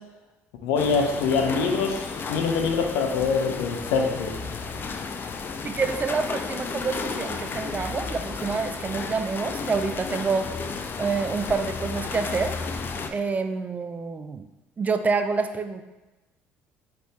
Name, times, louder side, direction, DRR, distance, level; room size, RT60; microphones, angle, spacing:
voice 1, 0.6-4.3, left 5 dB, 80° left, 3 dB, 0.7 m, -24 dB
sound 1, 0.8-13.1, left 4 dB, 40° left, 0.4 m, -33 dB
voice 2, 5.6-10.5 11.0-12.6 13.1-14.4 14.8-15.8, right 4 dB, 30° right, 8 dB, 0.4 m, -27 dB
5.1 x 3.3 x 3.0 m, 1.1 s
supercardioid pair, 75°, 6 cm